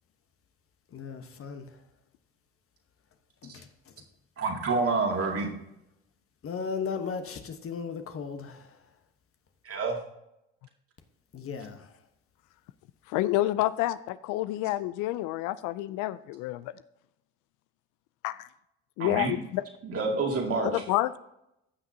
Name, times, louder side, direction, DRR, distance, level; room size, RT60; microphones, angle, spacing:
voice 1, 0.9-1.7 3.4-3.9 6.4-8.8 11.3-11.9, left 5 dB, 45° left, 1.2 m, -36 dB
voice 2, 4.4-5.5 9.6-10.0 19.0-19.4 19.8-20.8, right 3 dB, 45° right, 2.3 m, -28 dB
voice 3, 13.1-16.7 18.2-18.5 19.0-19.6 20.7-21.2, left 15 dB, 70° left, 0.5 m, -29 dB
15.5 x 5.9 x 2.8 m
hypercardioid pair, 70°, 32 cm